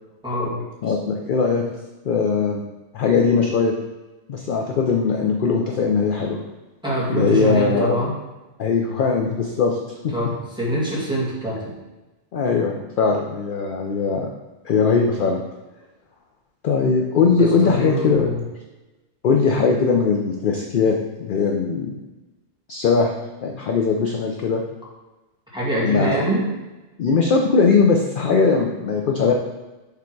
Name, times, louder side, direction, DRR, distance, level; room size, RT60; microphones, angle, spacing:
voice 1, 0.2-0.6 6.8-8.1 10.1-11.8 17.4-18.4 25.5-26.4, right 1 dB, 5° right, -7 dB, 1.9 m, -24 dB
voice 2, 0.8-1.6 2.0-2.6 2.9-3.7 4.3-6.4 7.1-8.0 8.6-9.8 10.0-10.1 12.3-14.3 14.6-15.4 16.6-18.3 19.2-22.0 22.7-23.1 23.4-24.6 25.8-26.2 27.0-29.3, left 5 dB, 55° left, 2 dB, 0.6 m, -20 dB
6.9 x 3.5 x 4.6 m, 1.1 s
omnidirectional pair, 1.3 m